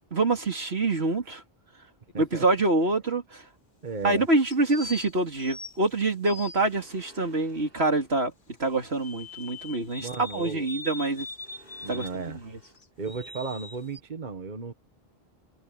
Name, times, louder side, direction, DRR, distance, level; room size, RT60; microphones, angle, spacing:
voice 1, 0.1-1.4 2.2-3.4 4.0-8.3 8.6-11.3 11.9-12.2, right 2 dB, 85° right, 3.3 m, -26 dB
sound 1, 2.1-3.1 4.5-6.9 9.0-12.2 12.6-14.0, left 3 dB, 55° left, 2.0 m, -42 dB
voice 2, 2.1-2.4 3.8-4.3 10.0-10.7 11.8-12.4 13.0-14.7, right 4 dB, 50° right, 1.5 m, -35 dB
sound 2, 6.6-8.1 8.8-9.3 11.3-12.8, right 1 dB, 65° right, 8.2 m, -57 dB
omnidirectional pair, 1.0 m